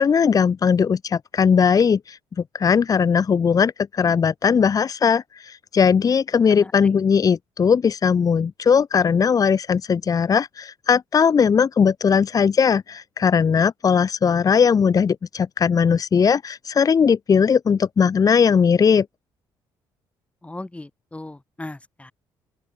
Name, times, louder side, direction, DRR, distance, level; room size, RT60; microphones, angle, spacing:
voice 1, 0.0-2.2 2.5-19.1, left 6 dB, 40° left, 1.0 m, -19 dB
voice 2, 6.5-6.9 20.4-22.1, left 2 dB, 15° left, 2.2 m, -37 dB
open air
cardioid pair, 85°, 10 cm